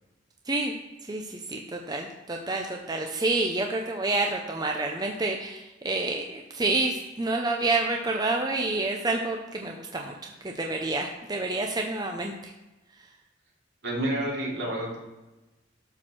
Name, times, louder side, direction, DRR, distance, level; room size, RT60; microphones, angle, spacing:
voice 1, 1.0-12.5, right 2 dB, 20° right, 2 dB, 0.7 m, -28 dB
voice 2, 13.8-15.0, right 1 dB, 65° right, -3 dB, 2.9 m, -29 dB
12.5 x 4.4 x 6.2 m, 1.1 s
head